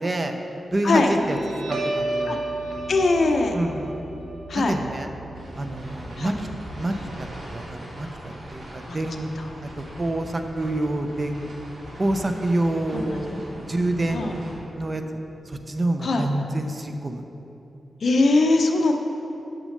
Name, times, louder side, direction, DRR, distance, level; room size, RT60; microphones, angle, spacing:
voice 1, 0.0-0.3 0.7-1.4 1.7-2.4 3.5-4.0 4.7-5.1 5.6-6.5 6.8-6.9 7.2-11.5 12.0-14.4 14.8-15.0 15.5-17.2, right 1 dB, 25° right, 6 dB, 0.5 m, -27 dB
Guitar, 0.9-7.9, right 2 dB, 75° right, 1.1 m, -33 dB
voice 2, 2.9-3.6 4.5-4.7 6.2-6.3 8.9-9.0 12.9-13.4 14.1-14.3 16.0-16.2 18.0-18.9, left 3 dB, 55° left, 4 dB, 0.7 m, -21 dB
sound 1, 5.3-14.5, right 1 dB, 60° right, 1.9 m, -40 dB
6.5 x 6.2 x 6.4 m, 2.9 s
wide cardioid pair, 155°, 0 cm